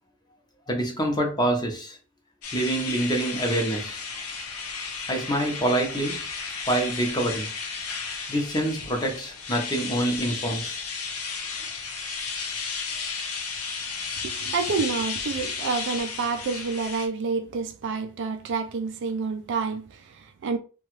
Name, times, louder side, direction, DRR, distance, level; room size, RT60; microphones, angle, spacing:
voice 1, 0.7-2.0 2.5-4.1 5.1-6.2 6.7-7.5 8.3-10.8, right 1 dB, 20° left, 0.7 m, -26 dB
sound 1, 2.4-17.1, left 5 dB, 75° left, 0.7 m, -33 dB
voice 2, 14.2-20.6, right 4 dB, 55° right, 0.4 m, -29 dB
2.9 x 2.3 x 3.0 m
head